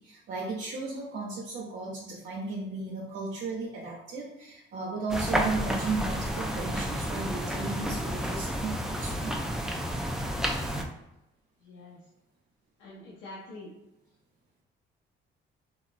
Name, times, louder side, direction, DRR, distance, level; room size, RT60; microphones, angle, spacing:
voice 1, 0.0-9.3, right 3 dB, 70° right, -5 dB, 0.7 m, -35 dB
sound 1, 5.1-10.8, equal, ahead, 0.3 m, -31 dB
voice 2, 11.6-12.0 12.8-13.7, left 2 dB, 90° left, -7 dB, 0.7 m, -46 dB
3.0 x 2.4 x 2.4 m, 0.91 s
cardioid pair, 90°, 20 cm